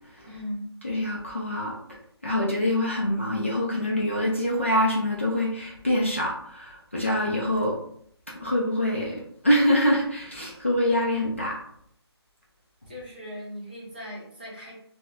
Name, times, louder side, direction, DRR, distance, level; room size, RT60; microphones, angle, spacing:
voice 1, 0.3-0.7 12.9-14.8, equal, 20° right, -6 dB, 0.6 m, -38 dB
voice 2, 0.8-1.8 2.2-7.8 8.4-11.6, left 1 dB, 30° left, -4 dB, 0.4 m, -25 dB
3.3 x 2.0 x 2.8 m, 0.65 s
hypercardioid pair, 180°, 14 cm